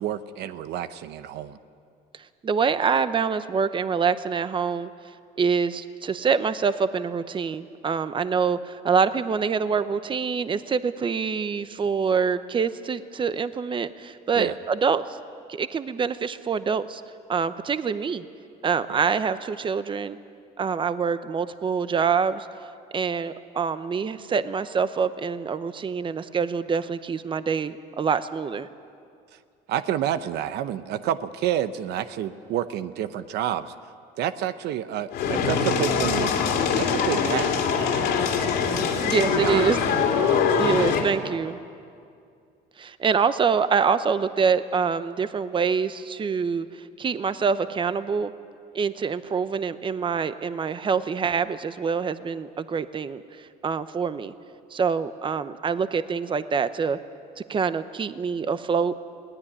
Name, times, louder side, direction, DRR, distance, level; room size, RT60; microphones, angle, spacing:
voice 1, 0.0-1.6 14.3-14.5 18.9-19.0 29.7-33.7 34.2-36.3 36.8-38.2 38.9-39.0 39.3-39.7, right 11 dB, 80° right, 12 dB, 0.9 m, -29 dB
voice 2, 2.4-4.9 5.4-15.2 15.5-17.0 17.3-18.2 18.6-20.2 20.6-22.5 22.9-28.7 39.0-39.8 40.6-41.6 42.8-48.3 48.7-54.3 54.7-57.0 57.5-58.9, right 6 dB, 30° right, 13 dB, 0.8 m, -25 dB
sound 1, 35.1-41.0, left 6 dB, 80° left, 3.0 m, -23 dB
21.0 x 17.5 x 9.9 m, 2.3 s
cardioid pair, 110°, 17 cm